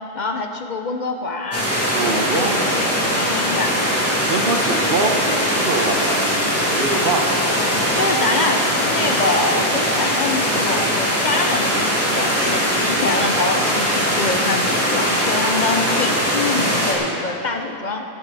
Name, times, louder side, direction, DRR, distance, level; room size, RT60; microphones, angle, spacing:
voice 1, 0.1-3.8 7.9-18.0, left 3 dB, 50° left, 4 dB, 0.8 m, -25 dB
sound 1, 1.5-16.9, equal, 15° left, 2.7 m, -20 dB
voice 2, 1.9-2.6 4.2-7.4, right 3 dB, 60° right, 4 dB, 1.2 m, -24 dB
17.0 x 11.5 x 4.1 m, 2.9 s
omnidirectional pair, 1.1 m